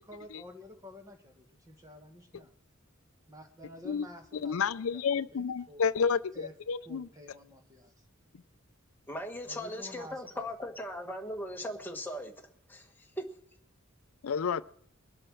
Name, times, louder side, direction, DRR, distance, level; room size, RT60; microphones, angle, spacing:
voice 1, 0.0-2.5 3.3-4.6 4.9-5.0 5.3-5.8 6.3-6.5 6.9-8.1 9.4-10.5, left 1 dB, 15° right, 1.8 m, -50 dB
voice 2, 4.4-7.1 14.2-14.6, left 6 dB, 75° left, 0.5 m, -30 dB
voice 3, 9.1-12.3 12.7-13.3, left 1 dB, 10° left, 1.4 m, -38 dB
22.5 x 7.7 x 6.4 m
head